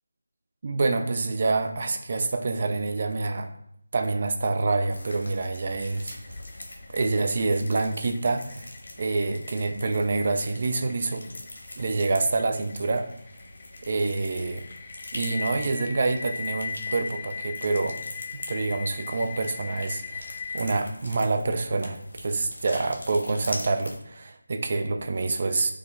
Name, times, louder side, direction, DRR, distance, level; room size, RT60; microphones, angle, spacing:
voice 1, 0.6-3.5 3.9-6.1 6.9-8.7 9.0-11.2 11.8-13.1 13.8-14.6 15.1-18.0 18.3-25.7, right 3 dB, 40° right, 7 dB, 0.4 m, -27 dB
sound 1, 4.9-24.0, left 1 dB, 75° left, 1.2 m, -43 dB
sound 2, 6.0-20.8, left 6 dB, 25° left, 0.4 m, -39 dB
4.9 x 2.1 x 3.4 m, 0.72 s
figure-of-eight pair, 160°, 0 cm